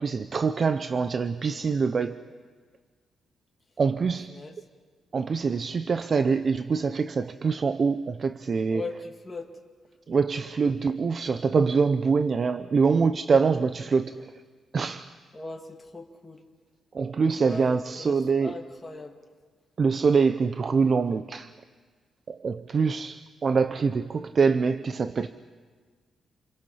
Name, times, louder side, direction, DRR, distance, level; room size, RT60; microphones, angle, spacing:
voice 1, 0.0-2.3 3.8-4.3 5.1-8.8 10.1-14.3 14.7-15.1 16.9-18.6 19.8-21.5 22.3-25.3, right 5 dB, 40° right, 0.7 m, -24 dB
voice 2, 8.7-9.5 15.3-16.4 17.4-19.2, left 3 dB, 20° left, 2.2 m, -39 dB
28.0 x 27.5 x 5.7 m
cardioid pair, 120°, 0 cm